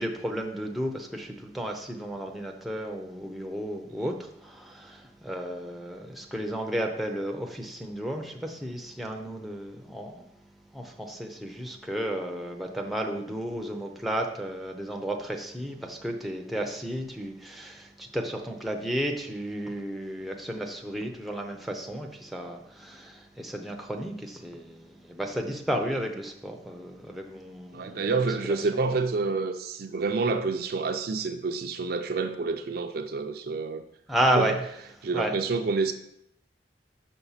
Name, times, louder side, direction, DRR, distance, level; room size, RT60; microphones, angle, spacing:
voice 1, 0.0-10.2 10.7-28.0 28.5-29.0 34.1-34.5 35.1-35.3, right 1 dB, ahead, 2 dB, 0.6 m, -33 dB
voice 2, 27.7-33.8 34.3-34.5 35.0-35.9, right 4 dB, 60° right, 7 dB, 0.4 m, -28 dB
6.0 x 3.6 x 5.6 m, 0.76 s
head